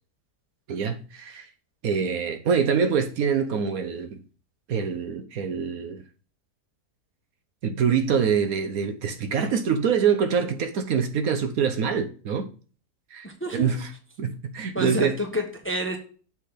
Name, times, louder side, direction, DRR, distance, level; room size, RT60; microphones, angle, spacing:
voice 1, 0.7-1.5 1.8-4.2 4.7-6.0 7.6-12.5 13.1-13.3 13.5-13.9 14.2-15.2, right 6 dB, 65° right, 1.1 m, -25 dB
voice 2, 13.2-13.8 14.7-16.0, equal, 10° left, 1.0 m, -29 dB
7.5 x 3.4 x 5.7 m
omnidirectional pair, 1.7 m